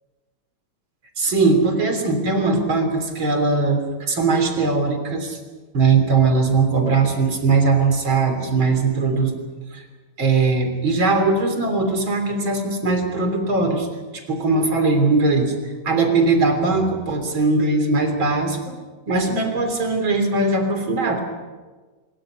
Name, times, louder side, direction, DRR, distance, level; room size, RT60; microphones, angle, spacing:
voice 1, 1.2-5.4 5.7-9.3 9.7-9.8 10.2-13.9 14.1-18.8 19.1-21.2, right 3 dB, 70° right, 6 dB, 4.1 m, -20 dB
23.5 x 22.0 x 6.6 m, 1.3 s
omnidirectional pair, 2.3 m